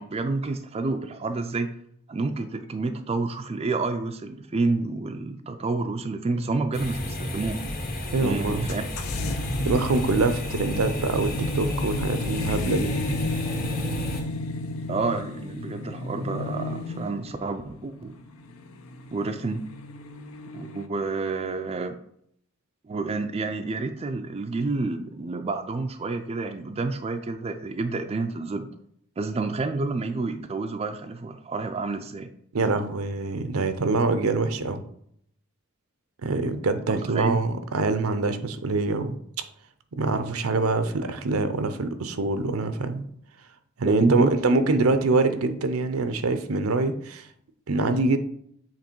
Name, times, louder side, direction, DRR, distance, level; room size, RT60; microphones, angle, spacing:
voice 1, 0.0-1.7 2.1-7.6 8.2-8.8 14.9-18.2 19.1-19.6 20.5-21.9 22.9-28.7 29.2-32.3 36.9-37.4 43.8-44.3, right 3 dB, 30° right, 7 dB, 0.4 m, -29 dB
sound 1, 6.7-14.2, left 1 dB, 45° left, 1.1 m, -32 dB
voice 2, 8.1-8.7 9.6-12.9 32.5-34.8 36.2-39.2 39.9-43.1 43.8-47.3 47.7-48.2, right 3 dB, 75° right, 9 dB, 0.6 m, -25 dB
sound 2, 8.7-20.9, left 2 dB, 75° left, 0.6 m, -33 dB
7.5 x 3.0 x 4.5 m, 0.70 s
head